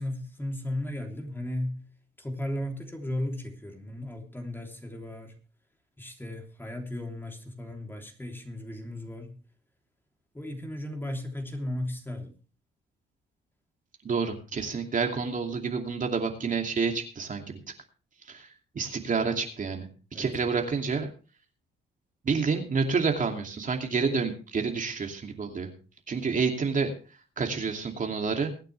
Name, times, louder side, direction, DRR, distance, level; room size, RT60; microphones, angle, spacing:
voice 1, 0.0-1.8 2.2-5.3 6.0-9.3 10.3-12.3 20.1-20.3, left 1 dB, 10° left, 3.2 m, -35 dB
voice 2, 14.0-17.6 18.3-18.5 18.7-21.1 22.2-25.7 26.1-26.9 27.4-28.5, right 5 dB, 40° right, 2.7 m, -29 dB
23.5 x 9.0 x 3.3 m
cardioid pair, 90°, 20 cm